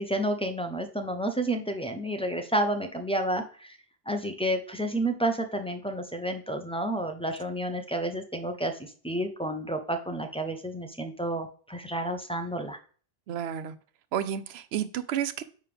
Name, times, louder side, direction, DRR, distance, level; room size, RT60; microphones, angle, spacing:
voice 1, 0.0-3.8 4.1-12.8, right 1 dB, 5° left, 0.6 m, -30 dB
voice 2, 13.3-13.7 14.1-15.4, right 9 dB, 90° right, 0.8 m, -31 dB
8.9 x 3.5 x 3.4 m
omnidirectional pair, 1.0 m